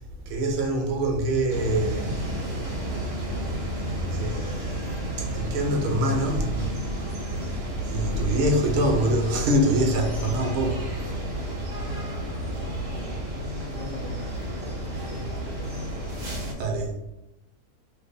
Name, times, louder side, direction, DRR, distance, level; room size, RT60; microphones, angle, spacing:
voice 1, 0.3-2.1 4.1-6.7 7.0-10.9 16.6-16.9, right 1 dB, 75° right, 1.1 m, -25 dB
sound 1, 1.5-16.5, right 1 dB, 50° right, 1.1 m, -31 dB
voice 2, 12.9-13.2 13.6-14.6 14.9-15.8 16.3-16.8, left 2 dB, 80° left, 1.1 m, -45 dB
2.8 x 2.1 x 4.0 m
omnidirectional pair, 1.5 m